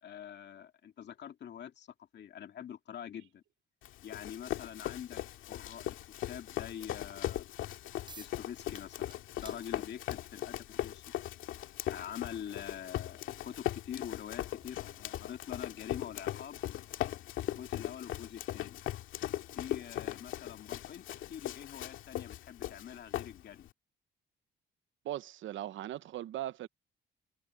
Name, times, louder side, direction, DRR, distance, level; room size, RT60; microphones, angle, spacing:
voice 1, 0.0-3.4 4.0-5.2 5.5-6.0 6.3-7.4 8.2-9.2 9.4-11.0 11.9-16.6 17.5-18.8 19.5-23.7, left 9 dB, 60° left, 2.4 m, -45 dB
Run, 3.8-23.7, left 13 dB, 90° left, 2.2 m, -39 dB
sound 1, 8.1-8.4 8.7-10.3 11.4-11.5 12.0-18.7, right 3 dB, 25° right, 5.6 m, -60 dB
voice 2, 25.0-26.7, right 13 dB, 75° right, 0.8 m, -39 dB
cardioid pair, 90°, 20 cm